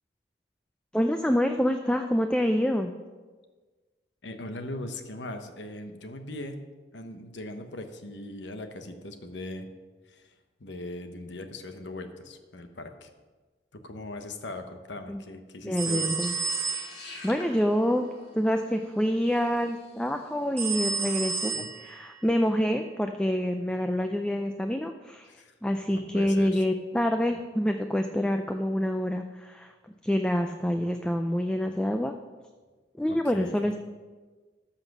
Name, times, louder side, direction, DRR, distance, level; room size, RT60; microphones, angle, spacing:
voice 1, 0.9-2.9 15.1-15.2 15.6-16.3 17.2-21.5 21.8-25.3 25.6-29.7 30.0-32.1 33.0-33.8, equal, 5° left, 5 dB, 0.4 m, -27 dB
voice 2, 4.2-6.6 6.9-9.7 10.1-10.3 10.6-13.1 13.7-16.1 21.5-21.7 25.3-25.5 25.9-26.6 30.7-30.8 33.1-33.8, left 1 dB, 80° left, 7 dB, 1.0 m, -40 dB
sound 1, 15.8-17.1 20.6-22.1, right 5 dB, 15° right, 1.3 m, -31 dB
sound 2, 16.2-20.5, left 2 dB, 60° left, 2.2 m, -48 dB
13.5 x 5.8 x 6.0 m, 1.3 s
head